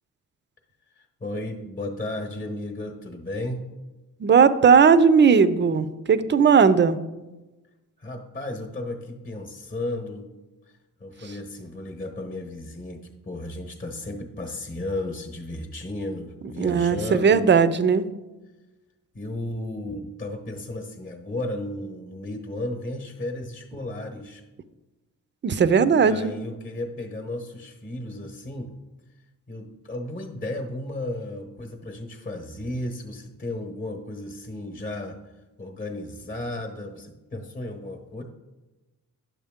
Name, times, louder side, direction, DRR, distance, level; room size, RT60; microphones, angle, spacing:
voice 1, 1.0-3.7 8.0-10.3 10.6-10.7 11.0-17.5 19.1-24.4 26.0-28.7 29.5-35.2 35.6-38.2, left 1 dB, 25° left, 4 dB, 1.0 m, -34 dB
voice 2, 4.2-7.0 16.6-18.0 25.4-26.3, right 6 dB, 35° right, 14 dB, 0.5 m, -17 dB
9.7 x 7.0 x 3.6 m, 1.1 s
cardioid pair, 115°, 34 cm